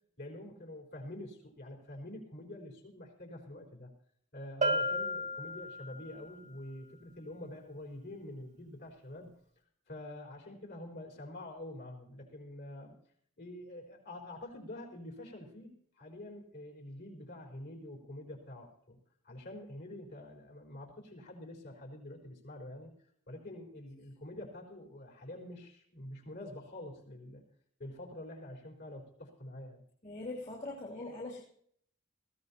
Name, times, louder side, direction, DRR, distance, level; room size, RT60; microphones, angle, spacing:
voice 1, 0.2-3.9 4.3-9.3 9.9-12.9 13.4-19.0 19.2-22.9 23.3-27.4 27.8-29.8, left 1 dB, 55° left, 1 dB, 4.3 m, -46 dB
Bell, 4.6-6.2, equal, 40° right, 1.3 m, -33 dB
voice 2, 30.0-31.4, left 2 dB, 35° left, -3 dB, 2.5 m, -41 dB
20.5 x 15.5 x 2.9 m, 0.63 s
head